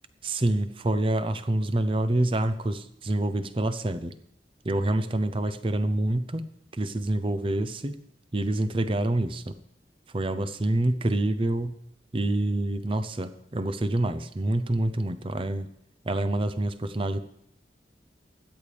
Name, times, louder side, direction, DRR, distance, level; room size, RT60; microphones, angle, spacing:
voice 1, 0.2-4.1 4.6-6.4 6.7-8.0 8.3-9.6 10.1-11.8 12.1-15.7 16.0-17.2, right 1 dB, 30° right, 12 dB, 0.6 m, -27 dB
16.5 x 11.0 x 3.4 m, 0.75 s
head